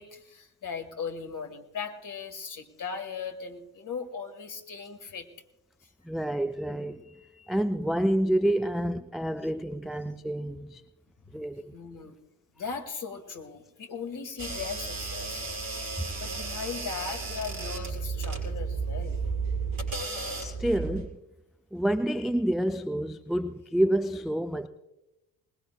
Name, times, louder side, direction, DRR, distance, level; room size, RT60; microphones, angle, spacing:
voice 1, 0.0-5.3 5.8-5.9 11.3-11.4 11.7-12.2 12.5-19.3, left 5 dB, 40° left, 2.1 m, -38 dB
voice 2, 6.0-10.8 11.3-11.7 20.4-21.1 21.7-24.7, right 1 dB, ahead, 0.4 m, -28 dB
sound 1, 14.4-21.1, right 4 dB, 45° right, 4.9 m, -33 dB
21.0 x 20.0 x 2.3 m
figure-of-eight pair, 45°, 49 cm